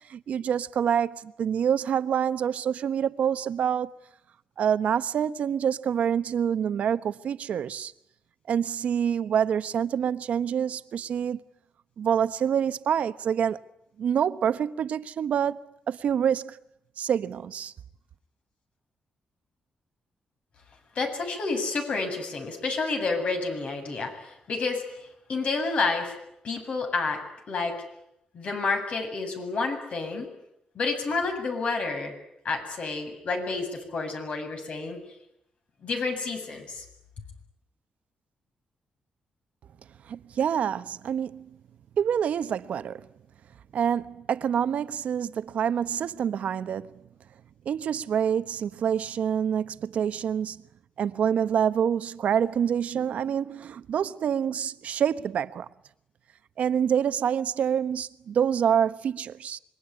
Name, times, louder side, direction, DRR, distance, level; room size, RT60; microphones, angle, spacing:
voice 1, 0.1-3.9 4.6-7.9 8.5-11.4 12.0-13.6 14.0-16.6 17.0-17.7 40.1-41.5 42.0-43.1 43.7-47.0 47.6-50.6 51.0-55.7 56.6-59.6, right 8 dB, 70° right, 1.0 m, -26 dB
voice 2, 20.9-24.8 25.3-26.2 26.4-27.2 27.5-27.8 28.3-30.3 30.7-32.1 32.4-35.0 35.8-36.8, left 3 dB, 55° left, 7.9 m, -29 dB
26.5 x 23.0 x 9.8 m
cardioid pair, 105°, 2 cm